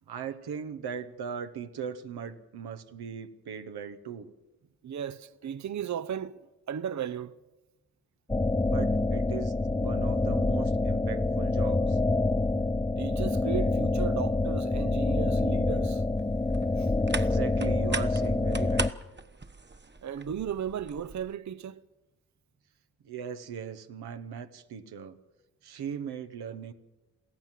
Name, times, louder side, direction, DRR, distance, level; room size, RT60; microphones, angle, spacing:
voice 1, 0.1-4.3 8.6-12.0 17.1-18.9 23.0-25.2 25.6-26.7, right 7 dB, 80° right, 1.2 m, -39 dB
voice 2, 4.8-6.4 6.7-7.3 13.0-16.0 16.8-16.9 17.2-17.3 20.0-21.8, right 8 dB, 50° right, 0.7 m, -35 dB
sound 1, 8.3-18.9, left 2 dB, 10° left, 0.7 m, -26 dB
sound 2, 16.2-21.3, right 3 dB, 30° right, 1.3 m, -39 dB
23.5 x 15.5 x 7.5 m
supercardioid pair, 45°, 38 cm